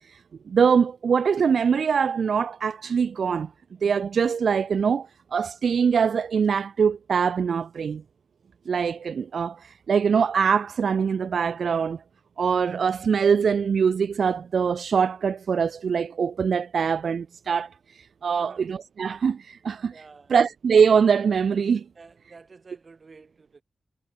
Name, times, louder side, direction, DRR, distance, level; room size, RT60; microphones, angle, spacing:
voice 1, 0.5-3.5 3.8-8.0 8.7-12.0 12.4-19.9 20.3-21.8, right 6 dB, 85° right, 0.6 m, -23 dB
voice 2, 19.9-20.4 21.9-23.6, right 4 dB, 45° right, 6.8 m, -50 dB
wide cardioid pair, 135°, 0 cm